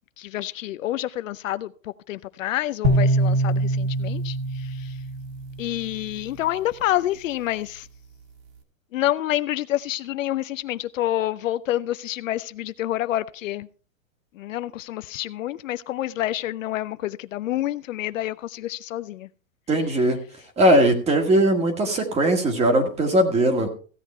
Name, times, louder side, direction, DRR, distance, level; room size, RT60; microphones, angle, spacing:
voice 1, 0.2-4.9 5.6-7.9 8.9-13.7 14.4-19.3, left 14 dB, 70° left, 0.7 m, -28 dB
sound 1, 2.8-6.1, right 1 dB, 50° right, 2.5 m, -24 dB
voice 2, 19.7-20.2 20.6-23.7, right 1 dB, 15° right, 1.8 m, -19 dB
15.5 x 8.0 x 4.3 m
supercardioid pair, 155°, 41 cm